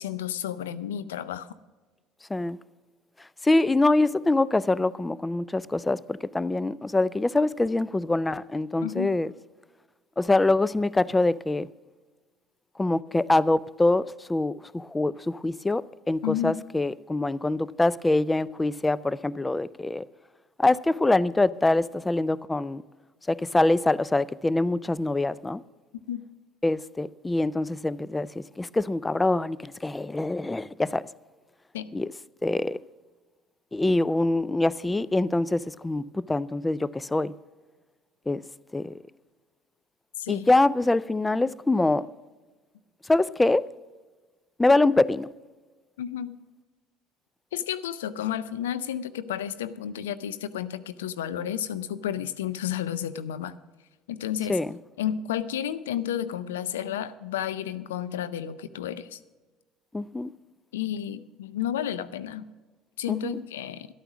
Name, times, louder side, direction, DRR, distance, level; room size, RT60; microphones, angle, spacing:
voice 1, 0.0-1.5 8.8-9.2 16.2-16.6 26.1-26.2 31.7-31.9 40.2-40.5 46.0-46.4 47.5-53.6 54.1-54.6 55.0-59.2 60.7-62.5 63.0-63.9, left 10 dB, 85° left, 0.5 m, -31 dB
voice 2, 3.4-9.3 10.2-11.7 12.8-20.1 20.6-22.8 23.3-25.6 26.6-28.3 28.6-31.0 31.9-32.1 32.4-32.8 33.7-37.3 38.3-38.4 38.7-38.9 40.3-42.1 43.1-43.7 44.6-45.3 54.5-54.7 59.9-60.3 63.1-63.4, left 2 dB, 15° left, 0.4 m, -24 dB
12.0 x 9.0 x 6.1 m
hypercardioid pair, 70°, 0 cm